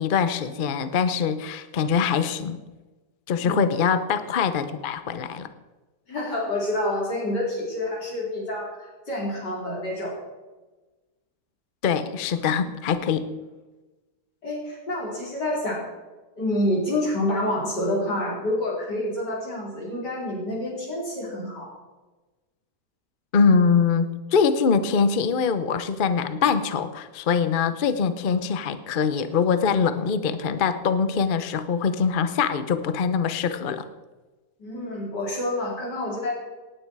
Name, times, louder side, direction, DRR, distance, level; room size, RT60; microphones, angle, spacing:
voice 1, 0.0-2.6 3.3-5.5 11.8-13.3 23.3-33.9, left 6 dB, 50° left, 12 dB, 0.6 m, -23 dB
voice 2, 6.1-10.1 14.4-15.9 16.4-21.7 34.6-36.3, left 1 dB, 75° left, -4 dB, 5.1 m, -28 dB
18.0 x 9.7 x 4.7 m, 1.2 s
omnidirectional pair, 1.8 m